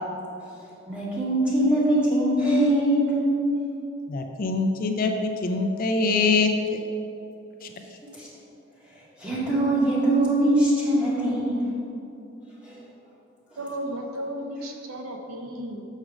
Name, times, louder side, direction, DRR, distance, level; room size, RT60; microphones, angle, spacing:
voice 1, 0.9-3.3 6.0-6.1 8.1-8.3 9.2-11.6 12.6-12.8, right 1 dB, 5° right, -8 dB, 1.8 m, -22 dB
voice 2, 4.1-6.5, left 3 dB, 40° left, 4 dB, 0.4 m, -23 dB
voice 3, 13.6-15.8, right 1 dB, 85° right, 3 dB, 0.8 m, -34 dB
6.4 x 6.1 x 4.9 m, 2.7 s
head